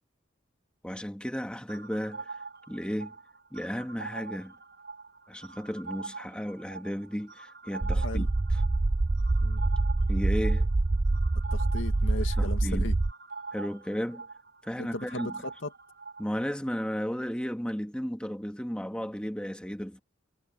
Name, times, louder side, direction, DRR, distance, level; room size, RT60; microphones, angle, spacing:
voice 1, 0.8-2.4 2.7-3.2 3.5-4.5 5.3-8.6 10.1-10.7 12.4-12.9 13.5-14.3 14.6-15.4 16.2-20.0, equal, 5° left, 2.1 m, -34 dB
sound 1, 1.7-16.5, right 4 dB, 55° right, 6.5 m, -44 dB
sound 2, 7.8-13.1, right 2 dB, 25° right, 0.4 m, -26 dB
voice 2, 11.5-13.0 14.8-15.7, left 2 dB, 75° left, 2.1 m, -37 dB
head